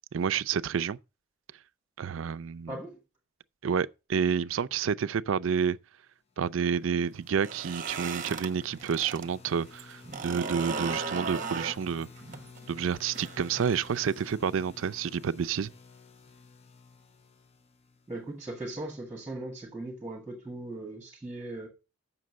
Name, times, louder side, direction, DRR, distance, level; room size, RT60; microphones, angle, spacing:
voice 1, 0.1-1.0 2.0-2.8 3.6-5.8 6.4-12.1 12.7-15.7, right 7 dB, 80° right, 0.4 m, -29 dB
voice 2, 2.7-3.0 18.1-21.7, right 2 dB, 10° right, 1.8 m, -39 dB
sound 1, 6.6-18.4, left 4 dB, 30° left, 0.6 m, -52 dB
sound 2, 7.3-9.3 9.6-14.3, right 4 dB, 40° right, 0.8 m, -37 dB
7.7 x 6.0 x 6.1 m
head